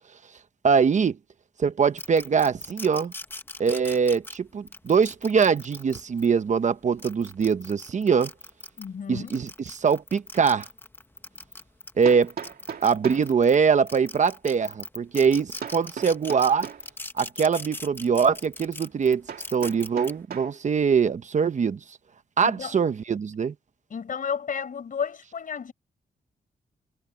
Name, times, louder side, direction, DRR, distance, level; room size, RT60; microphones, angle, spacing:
voice 1, 0.6-1.2 1.6-3.1 3.6-8.3 9.1-10.7 12.0-12.3 12.8-16.7 17.2-19.2 19.5-21.8 22.4-23.5, right 6 dB, 45° right, 1.0 m, -23 dB
sound 1, 2.0-6.3 6.8-8.9 9.3-13.6 13.9-20.1, left 2 dB, 15° left, 1.0 m, -40 dB
voice 2, 8.8-9.4 22.4-22.8 23.9-25.7, left 7 dB, 55° left, 5.6 m, -32 dB
Hammer, 12.0-13.3 15.6-16.9 19.3-20.6, right 7 dB, 65° right, 2.5 m, -38 dB
wide cardioid pair, 125°, 17 cm